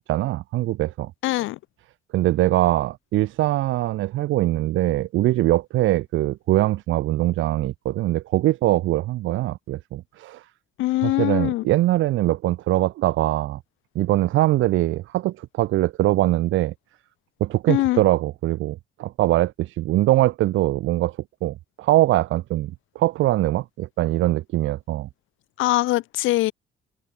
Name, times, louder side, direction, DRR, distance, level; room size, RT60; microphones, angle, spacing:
voice 1, 0.1-1.1 2.1-10.4 11.0-13.6 13.9-16.7 17.4-25.1, right 16 dB, 80° right, 0.6 m, -22 dB
voice 2, 1.2-1.6 10.8-11.6 17.7-18.0 25.6-26.5, left 17 dB, 90° left, 0.7 m, -22 dB
cardioid pair, 90°, 20 cm